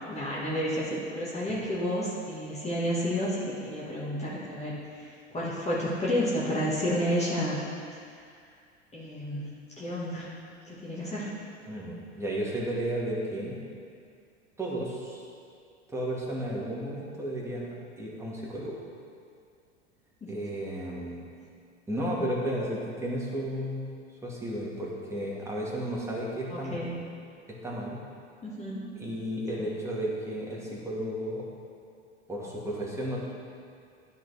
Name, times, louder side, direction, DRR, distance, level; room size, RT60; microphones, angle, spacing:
voice 1, 0.1-7.6 8.9-10.3 10.6-11.3 20.2-20.3 26.5-27.0 28.4-28.8 29.6-29.7, equal, 20° left, -8 dB, 1.7 m, -31 dB
voice 2, 11.7-13.6 14.6-15.3 15.9-18.8 20.3-21.3 21.9-23.9 24.2-26.8 27.5-28.0 29.0-31.5 32.3-33.2, right 1 dB, 10° right, -5 dB, 1.9 m, -33 dB
12.5 x 4.2 x 3.4 m, 2.3 s
figure-of-eight pair, 80°, 34 cm